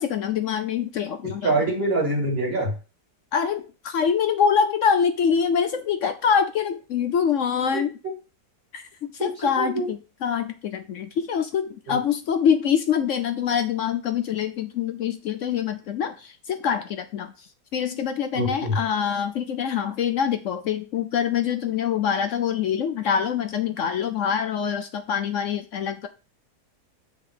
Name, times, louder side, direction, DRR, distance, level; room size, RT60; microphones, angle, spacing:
voice 1, 0.0-1.5 3.3-7.9 8.7-8.9 9.1-17.3 17.7-26.1, left 7 dB, 65° left, 9 dB, 0.8 m, -25 dB
voice 2, 1.2-2.7 9.4-9.8 11.9-12.0 18.3-18.8, right 2 dB, 35° right, -1 dB, 2.5 m, -25 dB
7.0 x 3.7 x 4.9 m, 0.33 s
omnidirectional pair, 1.8 m